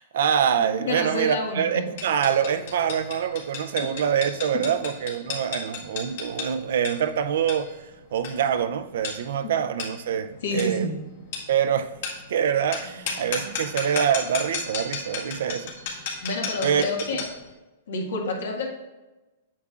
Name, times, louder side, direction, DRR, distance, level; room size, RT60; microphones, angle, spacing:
voice 1, 0.0-10.9 11.5-12.0 12.3-15.7 16.6-16.8, right 8 dB, 70° right, 0.5 m, -25 dB
voice 2, 0.6-1.8 10.4-10.9 16.2-17.2 17.9-18.7, left 2 dB, 80° left, 1.7 m, -29 dB
sound 1, 2.0-17.4, left 5 dB, 60° left, 1.9 m, -35 dB
8.4 x 7.1 x 2.4 m
hypercardioid pair, 155°, 0 cm